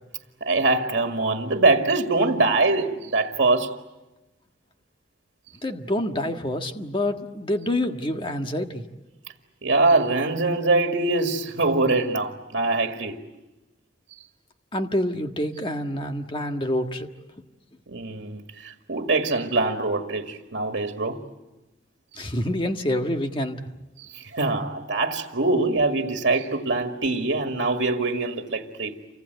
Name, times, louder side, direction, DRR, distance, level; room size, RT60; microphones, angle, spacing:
voice 1, 0.4-3.7 9.6-13.2 17.9-21.2 24.1-28.9, right 3 dB, 80° right, 2.0 m, -23 dB
voice 2, 5.6-8.8 14.7-17.1 22.1-23.7, left 1 dB, 30° left, 1.6 m, -27 dB
29.0 x 25.5 x 8.1 m
head